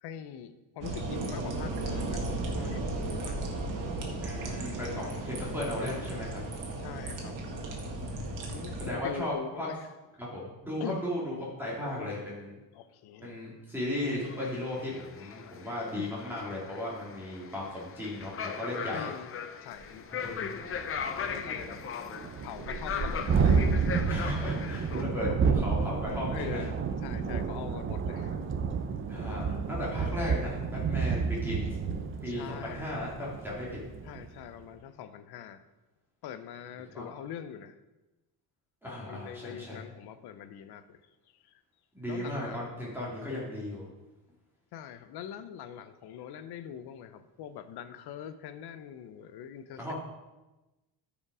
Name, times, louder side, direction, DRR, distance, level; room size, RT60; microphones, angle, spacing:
voice 1, 0.0-2.3 2.6-3.4 6.8-7.5 8.5-9.9 10.8-11.0 11.3-12.2 12.7-13.5 15.9-16.1 18.9-19.3 19.6-20.1 21.2-21.9 22.4-24.1 25.3-25.4 26.3-28.3 32.3-32.9 34.0-35.6 36.2-37.8 39.1-41.0 41.4-41.6 42.1-42.7 44.7-49.9, left 9 dB, 60° left, 12 dB, 0.8 m, -43 dB
sound 1, 0.8-8.9, right 2 dB, 45° right, 1.9 m, -35 dB
voice 2, 4.2-6.4 8.8-9.7 10.2-12.5 13.2-19.1 20.1-20.5 24.1-26.7 29.1-31.8 32.2-33.8 36.9-37.1 38.8-39.8 41.9-43.9 49.8-49.9, left 1 dB, 5° right, -6 dB, 2.2 m, -36 dB
sound 2, 14.0-25.0, left 7 dB, 30° left, 0.6 m, -39 dB
Thunderstorm, 19.8-19.9 20.3-20.4 20.7-34.3, right 5 dB, 30° right, 0.6 m, -30 dB
13.5 x 5.3 x 4.8 m, 1.1 s
cardioid pair, 155°, 43 cm